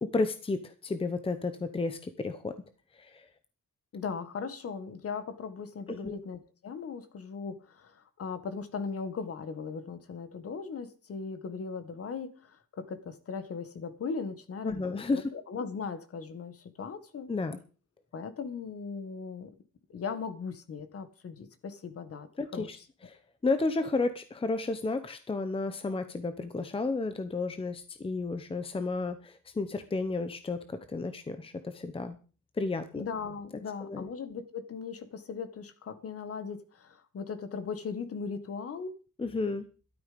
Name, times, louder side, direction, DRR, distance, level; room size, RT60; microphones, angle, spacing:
voice 1, 0.0-2.5 2.9-3.3 5.9-6.1 14.6-15.2 17.3-17.6 22.4-22.8 23.0-32.2 32.6-33.1 33.8-34.0 39.2-39.6, left 3 dB, 15° left, 0.9 m, -32 dB
voice 2, 3.9-17.3 18.1-19.5 19.9-22.3 22.5-22.7 33.0-38.9, left 5 dB, 45° left, 1.7 m, -38 dB
14.0 x 12.5 x 5.2 m
wide cardioid pair, 180°, 32 cm